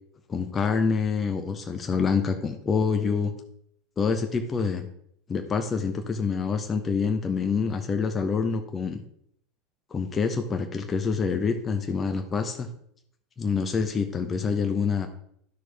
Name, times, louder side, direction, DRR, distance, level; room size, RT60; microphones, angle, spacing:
voice 1, 0.3-3.3 4.0-4.9 5.3-9.0 9.9-12.7 13.4-15.1, left 5 dB, 25° left, 5 dB, 0.9 m, -26 dB
11.5 x 6.1 x 3.4 m, 0.68 s
figure-of-eight pair, 75°, 0 cm